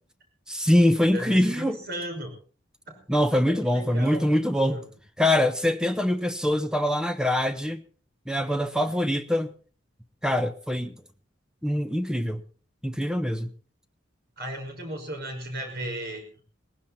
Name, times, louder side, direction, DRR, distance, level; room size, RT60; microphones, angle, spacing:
voice 1, 0.5-1.8 3.1-4.8 5.2-7.8 8.3-9.5 10.2-10.9 11.6-12.4 12.8-13.5, left 1 dB, 5° right, 1.0 m, -24 dB
voice 2, 1.1-2.3 2.9-3.0 3.5-4.3 4.6-4.8 14.4-16.4, right 1 dB, 55° right, 5.9 m, -35 dB
19.0 x 16.0 x 4.3 m
head